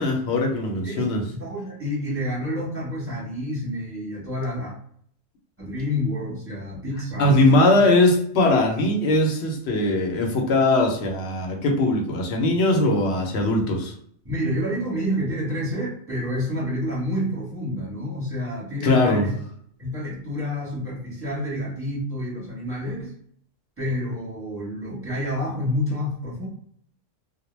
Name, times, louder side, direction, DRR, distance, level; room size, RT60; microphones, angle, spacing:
voice 1, 0.0-1.2 7.2-13.9 18.8-19.3, left 2 dB, 65° left, 2 dB, 0.8 m, -20 dB
voice 2, 0.8-4.7 5.6-7.5 14.2-19.3 19.8-23.1 23.8-26.5, left 1 dB, 10° right, -6 dB, 0.9 m, -29 dB
2.2 x 2.1 x 3.1 m, 0.63 s
omnidirectional pair, 1.4 m